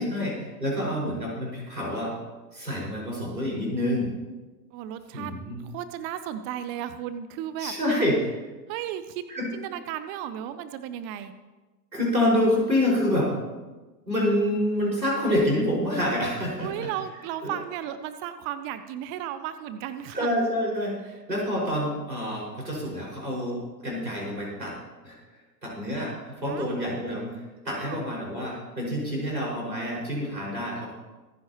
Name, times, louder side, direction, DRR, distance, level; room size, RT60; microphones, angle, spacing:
voice 1, 0.0-2.1 2.5-4.1 5.1-5.6 7.6-8.4 9.3-9.5 11.9-13.3 14.1-16.7 17.4-17.5 20.1-24.7 25.0-25.2 25.6-30.9, left 1 dB, 85° right, -4 dB, 5.7 m, -27 dB
voice 2, 4.7-5.3 5.6-7.7 8.7-9.2 9.5-11.3 16.6-20.3 26.5-26.7 27.8-28.0, right 11 dB, 25° right, 11 dB, 0.6 m, -34 dB
25.5 x 10.0 x 3.0 m, 1.2 s
figure-of-eight pair, 95°, 49 cm